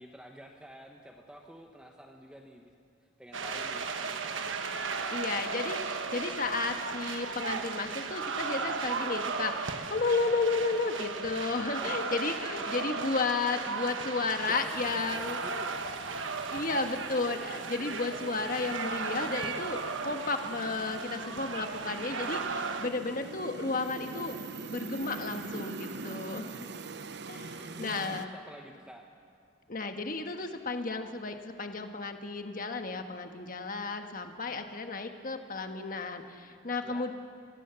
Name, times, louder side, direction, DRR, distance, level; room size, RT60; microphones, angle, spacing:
voice 1, 0.0-2.7 3.2-4.6 11.8-12.1 13.6-13.7 14.5-16.1 27.5-29.0 36.8-37.0, equal, 5° right, 1 dB, 1.0 m, -49 dB
sound 1, 3.3-22.9, right 4 dB, 80° right, 1.3 m, -36 dB
voice 2, 5.1-15.4 16.5-24.4 24.6-26.7 27.3-28.3 29.7-37.1, left 3 dB, 45° left, 6 dB, 1.4 m, -33 dB
sound 2, 14.3-28.3, right 3 dB, 60° right, 0.8 m, -44 dB
25.0 x 18.5 x 6.9 m, 2.3 s
head